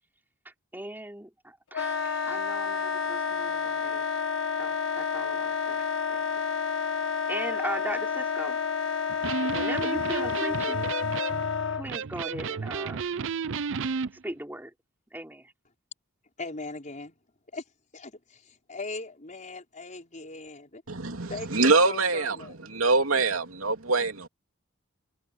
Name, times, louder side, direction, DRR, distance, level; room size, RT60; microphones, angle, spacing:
voice 1, 0.4-4.0 4.6-6.2 7.3-8.6 9.0-10.8 11.7-13.1 13.5-14.7 15.1-15.5, right 1 dB, 10° right, 4.1 m, -39 dB
Wind instrument woodwind instrument, 1.7-11.9, left 6 dB, 70° left, 1.6 m, -30 dB
Electric guitar, 9.1-14.1, right 5 dB, 65° right, 0.5 m, -32 dB
voice 2, 16.4-17.2 17.5-17.6 17.9-20.8 21.3-22.6, left 3 dB, 40° left, 5.3 m, -40 dB
voice 3, 20.9-24.3, right 3 dB, 90° right, 2.8 m, -24 dB
head